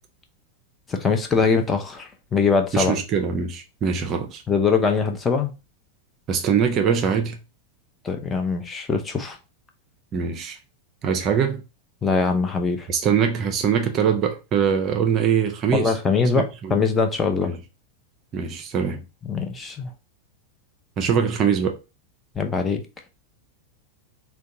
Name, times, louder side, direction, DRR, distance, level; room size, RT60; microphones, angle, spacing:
voice 1, 0.9-3.0 4.5-5.5 8.0-9.4 12.0-12.9 15.7-17.5 19.2-19.9 22.4-22.8, left 5 dB, 15° left, 0.5 m, -22 dB
voice 2, 2.7-4.4 6.3-7.4 10.1-10.6 11.0-11.6 12.9-16.0 16.3-16.8 17.4-17.6 18.3-19.0 21.0-21.8, right 7 dB, 30° right, 0.5 m, -23 dB
3.5 x 2.2 x 2.6 m
figure-of-eight pair, 90°, 0 cm